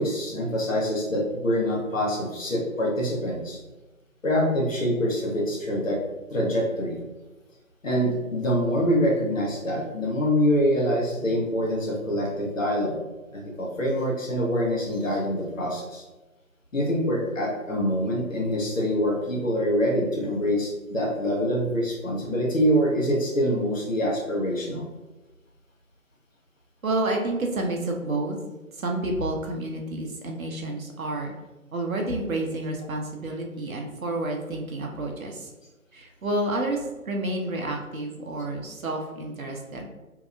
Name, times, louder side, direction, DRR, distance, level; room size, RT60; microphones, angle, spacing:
voice 1, 0.0-3.6 4.2-6.0 6.3-7.0 7.8-13.0 13.3-16.0 16.7-24.9, equal, 60° left, -2 dB, 0.8 m, -25 dB
voice 2, 26.8-28.4 28.8-31.3 31.7-35.5 35.9-39.8, right 2 dB, 65° right, 1 dB, 0.6 m, -29 dB
2.7 x 2.1 x 2.5 m, 1.1 s
figure-of-eight pair, 160°, 44 cm